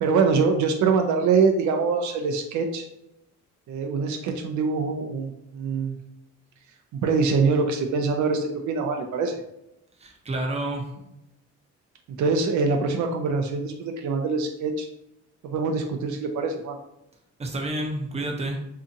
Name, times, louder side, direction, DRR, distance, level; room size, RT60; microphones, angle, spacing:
voice 1, 0.0-2.9 3.7-6.0 6.9-9.4 12.2-14.9 15.4-16.8, right 4 dB, 70° right, 4 dB, 0.4 m, -24 dB
voice 2, 10.0-10.9 17.4-18.7, right 1 dB, 20° right, 0 dB, 0.6 m, -29 dB
2.7 x 2.4 x 2.6 m, 0.83 s
cardioid pair, 90°, 30 cm